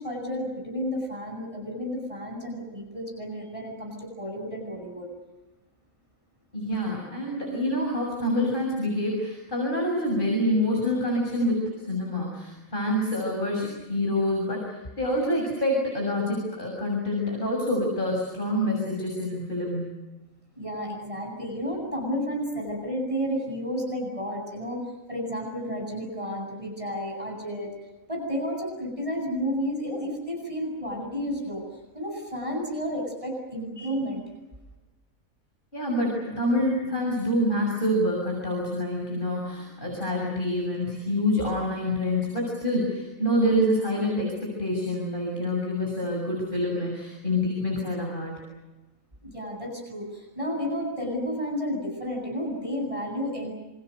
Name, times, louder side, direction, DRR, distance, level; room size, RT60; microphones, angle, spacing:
voice 1, 0.0-5.1 20.6-24.8 25.1-27.7 28.1-31.6 31.9-34.2 49.2-53.5, equal, 25° right, 0 dB, 8.2 m, -31 dB
voice 2, 6.5-20.0 35.7-44.3 44.6-48.4, left 1 dB, 35° left, -1 dB, 6.9 m, -27 dB
29.0 x 28.0 x 6.6 m, 1.1 s
omnidirectional pair, 1.4 m